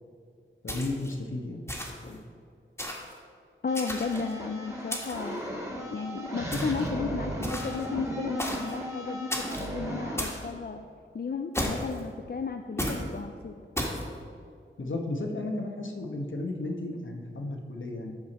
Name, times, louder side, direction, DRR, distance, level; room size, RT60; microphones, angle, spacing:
voice 1, 0.6-1.6 2.0-2.2 14.8-18.1, left 2 dB, 70° left, 2 dB, 1.2 m, -34 dB
sound 1, 0.7-1.1 1.7-2.1 2.8-3.1 3.7-4.3 4.9-5.3 6.5-6.9 7.4-7.9 8.4-8.8 9.3-9.7 10.2-10.5 11.5-12.0 12.8-13.1 13.8-14.0, equal, 10° left, 1.7 m, -33 dB
voice 2, 3.6-5.4 5.8-10.8 11.1-13.5, left 5 dB, 50° left, 6 dB, 0.4 m, -34 dB
sound 2, 3.7-10.2, equal, 15° right, 1.8 m, -35 dB
13.5 x 4.9 x 4.2 m, 2.2 s
wide cardioid pair, 60°, 21 cm